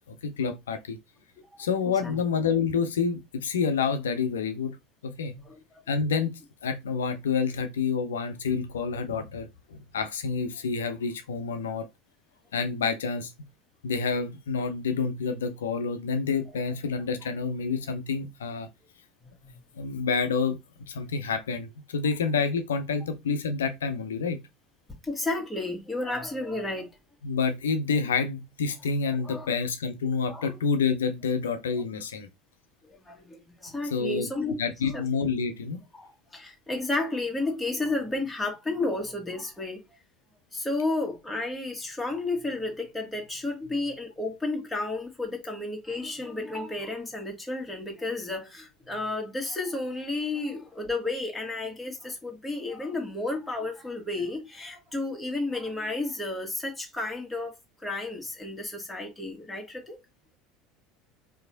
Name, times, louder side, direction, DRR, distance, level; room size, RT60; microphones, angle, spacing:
voice 1, 0.1-1.0 1.6-4.8 5.0-5.3 5.9-11.9 12.5-13.3 13.8-18.7 19.8-20.6 20.9-24.4 27.2-32.3 33.8-34.3 34.6-35.8, left 5 dB, 75° left, 0.7 m, -28 dB
voice 2, 5.4-5.8 25.0-26.9 29.2-29.5 30.3-30.5 32.9-34.6 34.8-35.0 35.9-39.8 40.5-57.5 57.8-60.0, left 2 dB, 10° left, 1.6 m, -32 dB
4.7 x 3.0 x 2.7 m
figure-of-eight pair, 70°, 0 cm